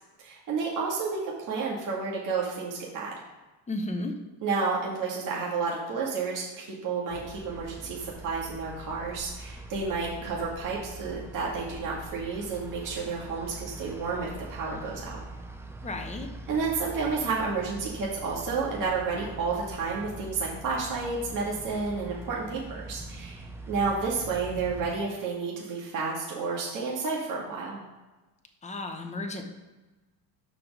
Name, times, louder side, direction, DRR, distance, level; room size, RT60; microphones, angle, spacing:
voice 1, 0.2-3.1 4.4-15.2 16.5-27.8, right 4 dB, 40° right, -4 dB, 1.9 m, -31 dB
voice 2, 3.7-4.1 15.8-16.3 28.6-29.4, left 2 dB, 15° left, 5 dB, 0.9 m, -33 dB
sound 1, 7.1-24.9, right 2 dB, 5° right, 0.3 m, -43 dB
6.0 x 5.0 x 6.0 m, 1.2 s
cardioid pair, 135°, 46 cm